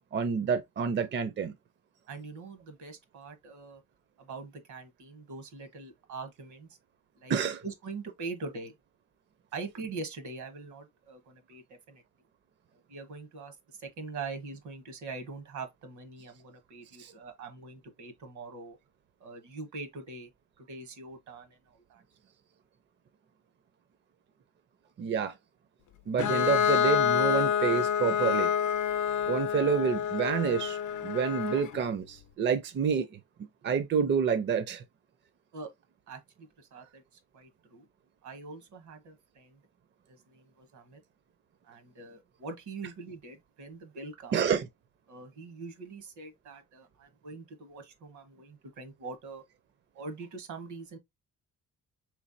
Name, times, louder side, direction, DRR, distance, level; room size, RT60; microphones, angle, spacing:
voice 1, 0.1-1.5 7.3-7.6 17.0-17.1 25.0-25.3 26.1-28.5 29.3-33.2 33.6-34.8 44.3-44.7, right 7 dB, 40° right, 0.5 m, -28 dB
voice 2, 2.1-3.8 4.2-6.7 7.2-7.3 7.6-8.7 9.5-12.0 12.9-18.8 19.2-20.3 20.6-22.0 35.5-35.7 36.1-37.9 38.2-39.6 40.1-41.0 41.6-44.4 45.1-49.4 49.9-51.0, right 4 dB, 75° right, 1.1 m, -43 dB
Bowed string instrument, 26.2-31.8, left 9 dB, 80° left, 0.6 m, -27 dB
3.5 x 3.2 x 2.6 m
cardioid pair, 90°, 30 cm